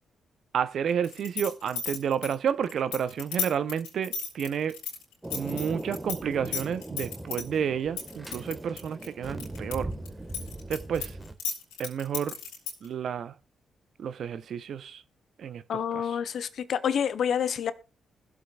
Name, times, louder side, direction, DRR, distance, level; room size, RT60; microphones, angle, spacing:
voice 1, 0.5-4.7 5.3-9.9 10.7-11.1 11.8-12.3 12.8-13.3 14.0-15.0 15.4-16.1, right 8 dB, 65° right, 0.6 m, -30 dB
sound 1, 1.0-6.2 6.4-7.4 8.0-9.7 10.1-12.9, left 7 dB, 90° left, 3.3 m, -33 dB
Thunder, 5.2-11.3, right 1 dB, 15° right, 1.4 m, -39 dB
voice 2, 15.7-17.7, left 8 dB, 65° left, 0.7 m, -28 dB
20.5 x 7.5 x 2.3 m
hypercardioid pair, 45°, 0 cm